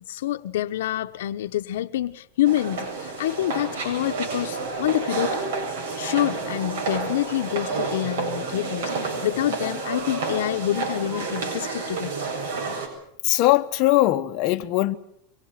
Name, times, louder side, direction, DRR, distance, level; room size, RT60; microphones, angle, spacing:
voice 1, 0.1-5.4 6.0-12.2, left 13 dB, 90° left, 0.9 m, -27 dB
sound 1, 2.4-12.9, right 4 dB, 90° right, 7.3 m, -30 dB
voice 2, 13.2-15.0, left 17 dB, 40° left, 1.2 m, -20 dB
24.0 x 22.5 x 7.4 m
supercardioid pair, 160°, 0 cm